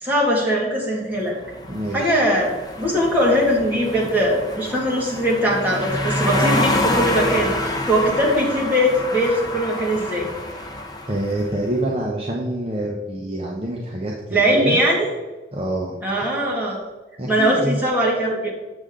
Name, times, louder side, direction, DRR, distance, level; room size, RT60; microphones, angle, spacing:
voice 1, 0.0-1.4 1.9-2.5 2.8-10.3 14.3-15.1 16.0-16.8 17.3-18.6, equal, 10° right, -5 dB, 2.0 m, -20 dB
sound 1, 1.3-11.6, left 1 dB, 20° left, 0.8 m, -27 dB
voice 2, 1.7-2.2 11.1-14.1 14.5-14.8 15.5-16.0 17.2-17.8, right 1 dB, 35° right, -2 dB, 0.8 m, -26 dB
8.2 x 6.6 x 3.7 m, 1.2 s
head